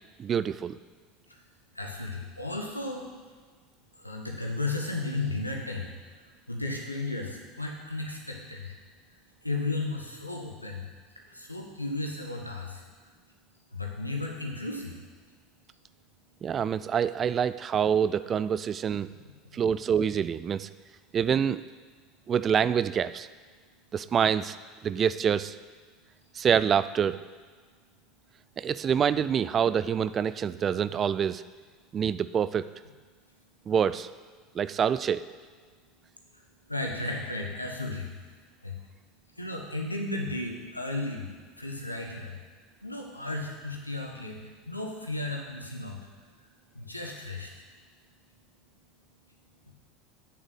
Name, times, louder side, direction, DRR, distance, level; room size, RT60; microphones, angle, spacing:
voice 1, 0.2-0.8 16.4-19.1 19.5-20.7 21.1-21.6 22.3-23.3 23.9-24.6 24.8-25.5 26.3-27.2 28.6-31.4 31.9-32.7 33.7-34.1 34.5-35.2, right 8 dB, 30° right, 15 dB, 0.4 m, -26 dB
voice 2, 1.7-3.1 4.0-5.9 6.5-8.8 9.4-10.8 11.3-12.8 13.7-15.0 36.7-38.1 38.6-38.8 39.4-41.3 41.6-42.4 42.8-44.4 44.6-46.0 46.7-47.6, left 2 dB, 85° left, 1 dB, 1.4 m, -34 dB
8.4 x 7.3 x 8.0 m, 1.5 s
figure-of-eight pair, 75°, 0 cm